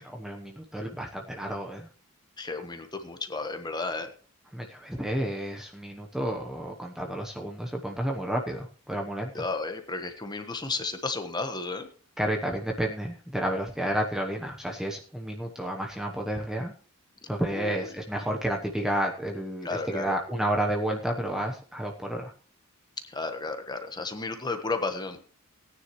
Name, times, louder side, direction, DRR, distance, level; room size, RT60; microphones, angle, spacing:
voice 1, 0.0-1.9 4.5-9.4 12.2-16.7 17.3-22.3, right 1 dB, ahead, 1 dB, 1.0 m, -31 dB
voice 2, 2.4-4.1 9.3-11.9 17.5-17.9 19.6-20.1 23.1-25.2, left 3 dB, 20° left, 6 dB, 1.2 m, -33 dB
18.0 x 9.8 x 3.1 m, 0.40 s
head